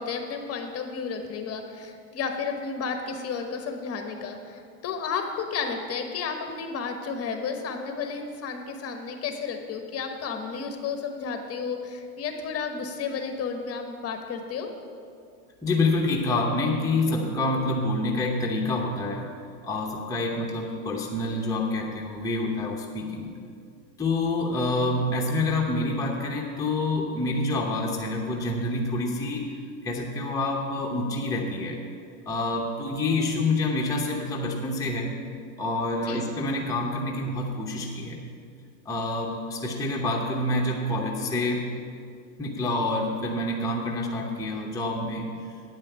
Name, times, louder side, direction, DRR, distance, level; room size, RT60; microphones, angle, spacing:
voice 1, 0.0-14.7 36.1-36.3 41.2-41.5, left 5 dB, 30° left, 5 dB, 1.1 m, -32 dB
voice 2, 15.6-19.3 19.6-23.3 24.0-29.6 29.8-31.8 32.3-35.2 35.6-38.2 38.8-41.6 42.4-45.3, left 2 dB, 10° left, -1 dB, 0.9 m, -27 dB
8.9 x 5.6 x 8.2 m, 2.3 s
hypercardioid pair, 110°, 45 cm